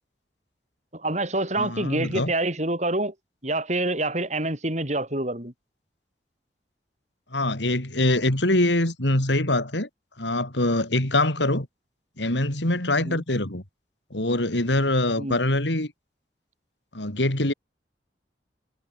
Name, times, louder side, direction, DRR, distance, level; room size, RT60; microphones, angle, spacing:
voice 1, 0.9-3.1 3.4-5.5 13.0-13.2 15.2-15.4, right 2 dB, 40° right, 7.1 m, -26 dB
voice 2, 1.6-2.3 7.3-9.9 10.2-11.7 12.2-13.6 14.1-15.9 16.9-17.5, left 1 dB, 85° left, 4.5 m, -24 dB
head